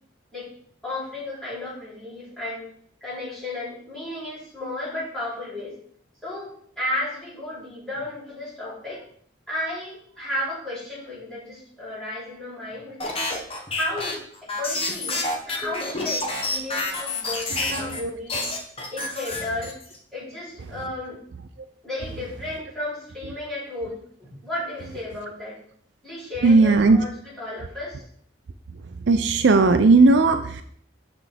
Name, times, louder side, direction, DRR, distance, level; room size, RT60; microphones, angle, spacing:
voice 1, 0.8-2.6 3.0-5.8 6.2-9.0 9.5-13.2 13.7-18.4 18.9-19.7 20.1-21.2 21.8-25.6 26.0-28.0, left 1 dB, 5° left, -10 dB, 3.2 m, -33 dB
sound 1, 13.0-18.0 18.3-20.0, left 2 dB, 30° left, 1.0 m, -28 dB
voice 2, 17.7-18.1 26.4-27.0 29.1-30.6, right 3 dB, 65° right, 8 dB, 0.4 m, -17 dB
7.2 x 6.0 x 3.4 m, 0.63 s
head